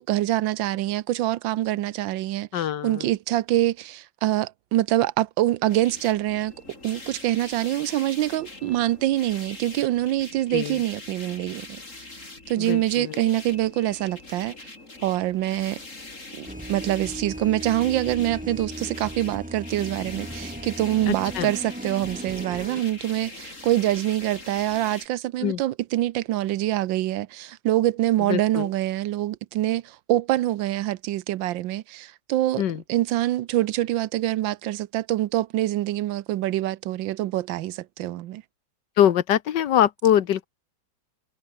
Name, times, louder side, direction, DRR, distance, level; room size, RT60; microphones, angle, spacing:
voice 1, 0.0-6.5 6.8-11.7 12.5-14.5 15.0-15.8 16.3-32.6 32.9-38.4, right 14 dB, 90° right, 1.4 m, -25 dB
voice 2, 2.5-3.1 10.5-10.8 12.6-13.2 21.1-21.5 25.4-25.6 28.3-28.7 32.6-32.8 39.0-40.5, left 10 dB, 70° left, 1.6 m, -23 dB
sound 1, 5.7-25.1, left 2 dB, 40° left, 4.8 m, -43 dB
sound 2, 16.5-22.8, right 1 dB, 5° right, 1.6 m, -37 dB
omnidirectional pair, 2.1 m